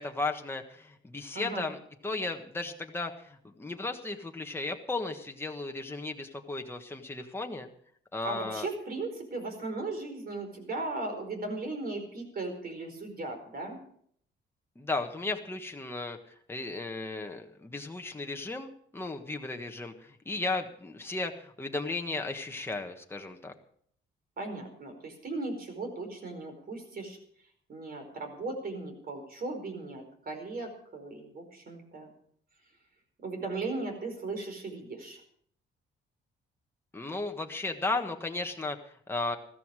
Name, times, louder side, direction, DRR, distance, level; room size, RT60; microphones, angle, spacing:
voice 1, 0.0-7.7 8.1-8.7 14.7-23.5 36.9-38.8 39.1-39.4, left 3 dB, 10° left, 3 dB, 1.4 m, -35 dB
voice 2, 8.2-13.8 24.4-27.2 27.7-32.1 33.2-35.2, right 2 dB, 50° right, 5 dB, 4.7 m, -37 dB
14.0 x 14.0 x 4.9 m, 0.63 s
cardioid pair, 90°, 20 cm